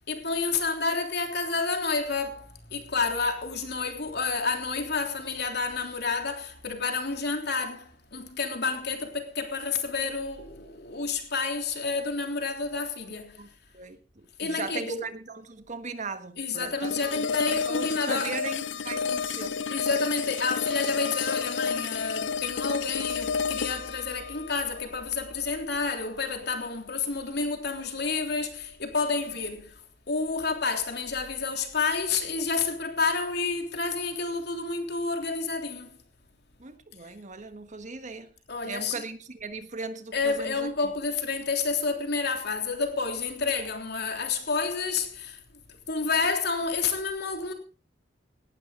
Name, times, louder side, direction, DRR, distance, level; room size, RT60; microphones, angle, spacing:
voice 1, 0.1-13.4 14.4-15.0 16.4-18.3 19.7-29.7 30.1-35.9 38.5-39.0 40.1-45.4 45.9-47.5, left 4 dB, 65° left, 3.3 m, -29 dB
voice 2, 13.4-19.6 36.6-38.3 38.6-40.7, right 4 dB, 40° right, 1.5 m, -38 dB
sound 1, 16.8-25.9, left 6 dB, 80° left, 0.7 m, -31 dB
18.5 x 12.0 x 3.8 m
head